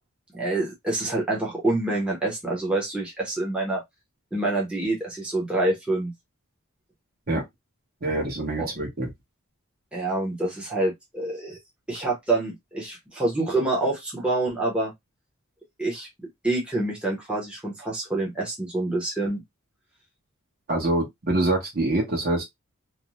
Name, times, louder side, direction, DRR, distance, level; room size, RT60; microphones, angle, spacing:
voice 1, 0.3-3.8 4.3-6.1 8.6-8.7 9.9-11.6 11.9-14.9 15.8-16.1 16.4-19.4, right 2 dB, 5° right, 0.7 m, -26 dB
voice 2, 8.0-9.1 20.7-22.4, right 2 dB, 45° right, 0.9 m, -25 dB
2.6 x 2.1 x 2.9 m
head